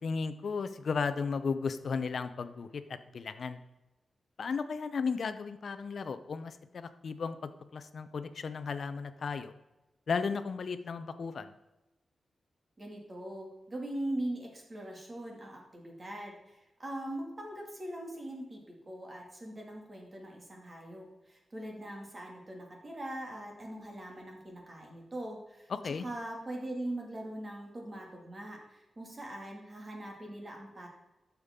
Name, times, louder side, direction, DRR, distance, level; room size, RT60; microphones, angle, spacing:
voice 1, 0.0-3.6 4.4-7.4 7.7-9.5 10.1-11.5 25.7-26.0, left 5 dB, 60° left, 11 dB, 0.7 m, -35 dB
voice 2, 12.8-30.9, right 1 dB, 30° right, 0 dB, 2.3 m, -41 dB
12.0 x 7.2 x 3.7 m, 1.0 s
wide cardioid pair, 135°, 0 cm